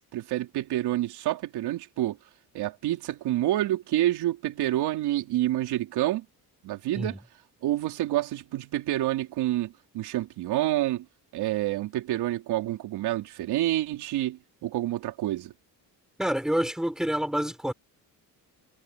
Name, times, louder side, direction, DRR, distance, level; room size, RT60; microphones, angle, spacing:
voice 1, 0.1-2.2 2.5-6.3 6.6-7.2 7.6-11.1 11.3-15.5, right 14 dB, 85° right, 3.8 m, -28 dB
voice 2, 16.2-17.7, equal, ahead, 3.9 m, -27 dB
cardioid pair, 155°, 38 cm